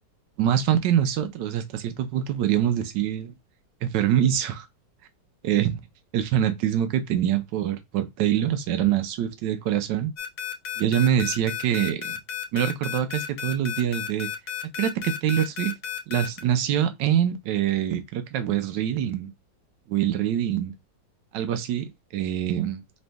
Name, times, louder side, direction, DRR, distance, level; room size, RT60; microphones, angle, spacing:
voice 1, 0.4-3.3 3.8-4.7 5.4-5.8 6.1-10.1 10.8-12.2 12.5-14.3 14.8-15.7 16.1-19.3 19.9-20.7 21.3-22.8, right 10 dB, 80° right, 1.3 m, -24 dB
sound 1, 10.2-16.4, left 10 dB, 65° left, 1.2 m, -32 dB
5.3 x 3.2 x 2.2 m
omnidirectional pair, 1.9 m